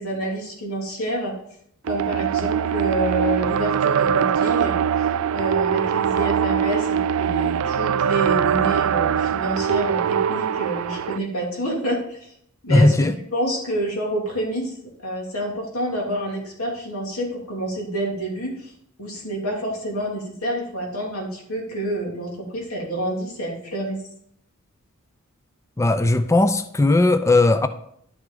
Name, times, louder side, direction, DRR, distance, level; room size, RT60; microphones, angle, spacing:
voice 1, 0.0-1.3 1.8-12.3 12.6-14.7 15.0-18.7 19.0-24.0, right 1 dB, 80° left, -1 dB, 2.7 m, -28 dB
sound 1, 1.9-11.2, right 8 dB, 70° right, 0.3 m, -22 dB
voice 2, 12.7-13.1 25.8-27.7, left 2 dB, 15° left, 11 dB, 0.4 m, -17 dB
11.0 x 6.2 x 3.8 m, 0.68 s
head